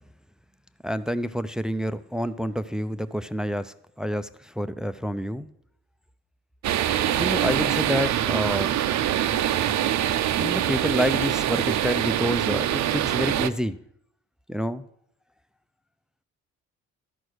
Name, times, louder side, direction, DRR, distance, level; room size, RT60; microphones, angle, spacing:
voice 1, 0.8-5.5 7.2-8.7 10.4-13.8 14.5-14.8, equal, ahead, 13 dB, 0.4 m, -28 dB
sound 1, 6.6-13.5, right 11 dB, 65° right, 0.6 m, -24 dB
12.5 x 4.8 x 6.2 m, 0.70 s
cardioid pair, 90°, 30 cm